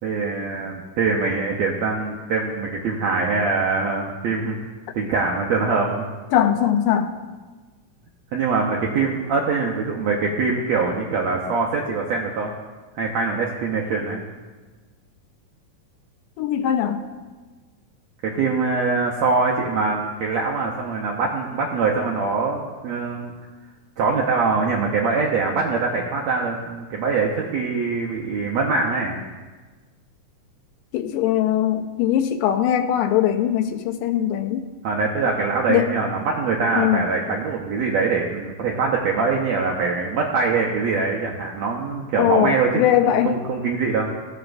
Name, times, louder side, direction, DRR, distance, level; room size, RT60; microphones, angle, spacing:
voice 1, 0.0-4.6 4.9-6.1 8.3-12.5 12.9-14.2 18.2-23.3 24.0-29.2 34.8-44.1, right 4 dB, 80° right, -1 dB, 1.5 m, -23 dB
voice 2, 6.3-7.1 16.4-17.0 30.9-34.6 35.7-35.9 36.8-37.1 42.2-43.3, left 10 dB, 85° left, 7 dB, 2.2 m, -20 dB
15.0 x 7.8 x 2.5 m, 1.3 s
omnidirectional pair, 4.0 m